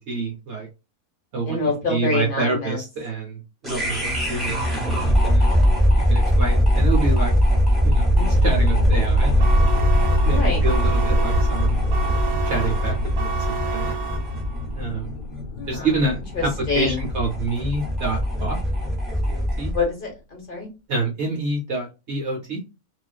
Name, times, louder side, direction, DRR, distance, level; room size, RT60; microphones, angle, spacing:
voice 1, 0.1-0.7 1.3-1.6 1.9-5.5 6.1-7.3 7.8-9.9 10.2-11.8 12.4-13.9 14.7-15.1 15.7-16.5 16.7-18.6 19.3-19.7 20.9-22.6, right 3 dB, 60° right, -1 dB, 0.8 m, -27 dB
voice 2, 1.5-2.8 10.2-10.6 15.6-15.9 16.3-17.1 19.7-20.7, left 3 dB, 40° left, -1 dB, 0.9 m, -26 dB
sound 1, 3.6-19.8, equal, ahead, 0.7 m, -21 dB
sound 2, 6.2-19.2, left 1 dB, 80° left, 1.0 m, -27 dB
sound 3, 9.4-14.7, right 6 dB, 80° right, 1.1 m, -31 dB
2.4 x 2.4 x 2.2 m, 0.28 s
omnidirectional pair, 1.6 m